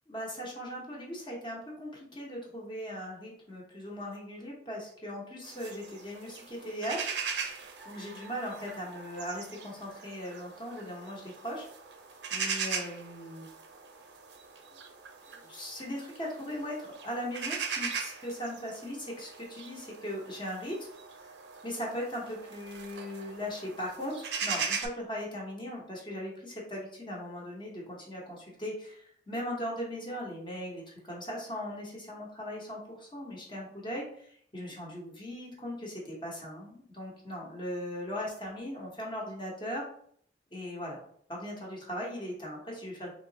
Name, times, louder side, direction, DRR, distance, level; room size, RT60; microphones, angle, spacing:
voice 1, 0.1-7.1 7.8-11.7 12.3-13.5 15.3-20.9 21.6-39.8 40.5-41.0 41.3-43.1, equal, 25° left, -3 dB, 0.9 m, -39 dB
sound 1, 5.5-24.9, right 5 dB, 75° right, 0.5 m, -40 dB
3.5 x 2.9 x 2.7 m, 0.62 s
head